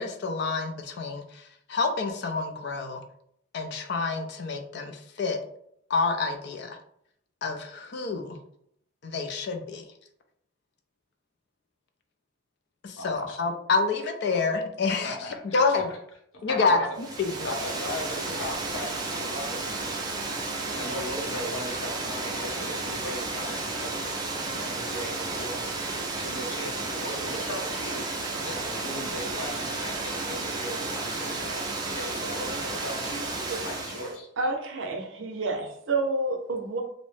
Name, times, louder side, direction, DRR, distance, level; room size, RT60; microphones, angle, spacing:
voice 1, 0.0-3.0 3.5-5.4 5.9-6.8 7.4-8.4 9.0-9.9 12.8-15.9 16.4-17.5, left 4 dB, 55° left, 5 dB, 0.4 m, -28 dB
voice 2, 12.9-13.4 15.0-15.8 16.5-16.8 17.4-19.6 20.7-25.7 26.1-34.3, left 1 dB, 80° left, 0 dB, 0.8 m, -38 dB
Water, 17.0-34.2, right 3 dB, 20° right, 0.4 m, -32 dB
voice 3, 34.4-36.8, right 2 dB, 70° right, 3 dB, 0.5 m, -29 dB
2.6 x 2.0 x 3.1 m, 0.70 s
head